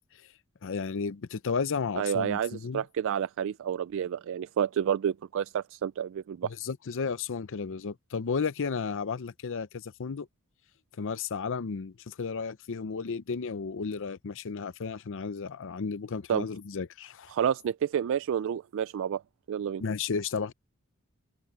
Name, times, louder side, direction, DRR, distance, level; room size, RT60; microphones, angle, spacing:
voice 1, 0.6-2.8 6.6-10.3 11.0-17.3 19.8-20.5, left 5 dB, 65° left, 0.6 m, -33 dB
voice 2, 2.0-6.5 16.3-16.5 17.3-19.2 19.5-19.8, right 8 dB, 60° right, 0.3 m, -29 dB
open air
head